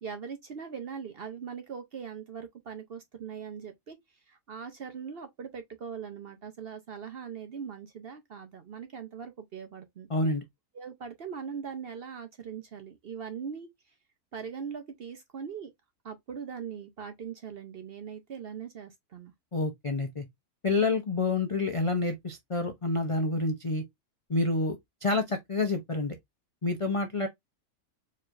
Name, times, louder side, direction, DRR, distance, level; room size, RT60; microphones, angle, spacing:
voice 1, 0.0-4.0 4.3-10.1 10.7-13.7 14.3-15.7 16.0-19.3, right 6 dB, 55° right, 0.7 m, -40 dB
voice 2, 10.1-10.4 19.5-20.2 20.6-23.8 24.3-26.2 26.6-27.3, left 3 dB, 45° left, 0.4 m, -28 dB
4.4 x 3.2 x 2.5 m
omnidirectional pair, 1.6 m